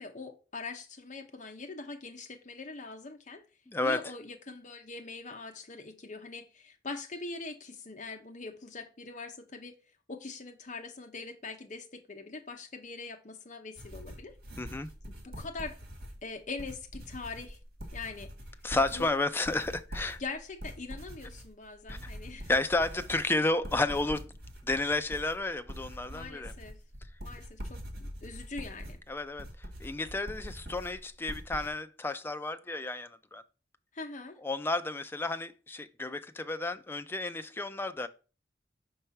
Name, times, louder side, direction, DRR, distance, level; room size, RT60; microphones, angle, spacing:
voice 1, 0.0-3.4 3.8-9.7 10.1-14.3 15.1-15.8 16.2-17.6 17.9-18.3 18.9-19.1 20.2-22.5 26.1-26.8 27.2-29.0 33.9-34.4, left 3 dB, 45° left, 0.9 m, -42 dB
voice 2, 3.7-4.0 14.6-14.9 18.6-20.2 21.9-22.1 22.5-24.3 24.6-26.5 29.1-29.5 29.8-33.4 34.4-38.1, left 2 dB, 15° left, 0.3 m, -32 dB
sound 1, 13.8-31.7, equal, 60° right, 1.6 m, -44 dB
5.5 x 3.3 x 5.6 m
head